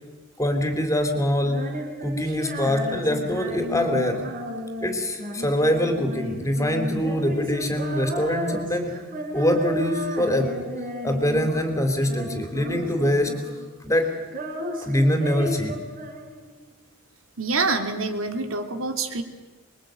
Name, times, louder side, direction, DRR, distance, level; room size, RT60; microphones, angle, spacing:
voice 1, 0.4-1.7 2.0-4.3 4.8-9.0 9.3-10.5 11.0-13.4 13.8-14.1 14.8-15.8, left 1 dB, 15° left, 6 dB, 3.6 m, -24 dB
Female singing, 1.4-11.7 12.0-13.7 14.0-16.6, equal, 40° right, 4.9 m, -34 dB
voice 2, 17.4-19.2, right 3 dB, 75° right, 6 dB, 2.9 m, -26 dB
27.0 x 22.5 x 9.2 m, 1.2 s
head